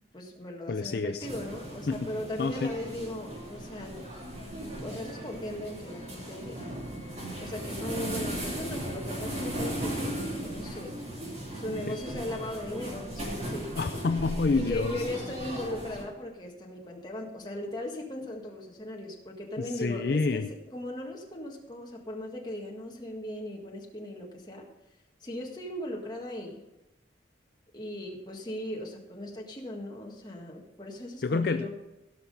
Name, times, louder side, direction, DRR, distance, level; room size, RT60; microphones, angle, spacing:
voice 1, 0.1-4.1 4.6-6.7 7.4-11.2 11.5-13.7 14.5-24.7 25.2-26.6 27.7-31.7, left 1 dB, 20° left, 0 dB, 1.7 m, -38 dB
voice 2, 0.7-1.3 1.9-2.1 2.4-2.7 11.9-12.0 13.8-14.9 19.6-20.5 31.2-31.7, left 4 dB, 55° left, 8 dB, 0.4 m, -28 dB
sound 1, 1.2-16.0, right 1 dB, 35° right, 2.9 m, -37 dB
17.0 x 5.9 x 5.4 m, 0.99 s
head